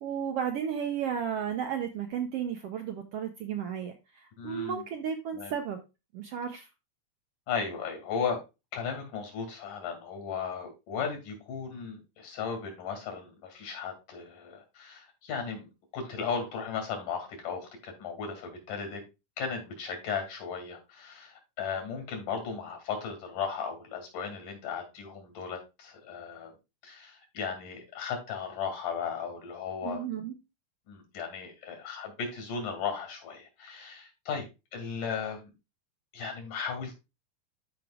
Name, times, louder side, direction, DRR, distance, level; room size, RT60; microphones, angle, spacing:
voice 1, 0.0-5.8 6.1-6.7 29.8-30.3, right 8 dB, 75° right, 6 dB, 1.4 m, -33 dB
voice 2, 4.4-4.9 5.3-5.5 7.5-8.4 8.7-19.0 19.4-26.5 26.8-30.0 30.9-34.5 34.7-35.5 36.1-37.0, left 6 dB, 90° left, 4 dB, 4.0 m, -36 dB
13.0 x 5.2 x 2.4 m, 0.26 s
omnidirectional pair, 3.6 m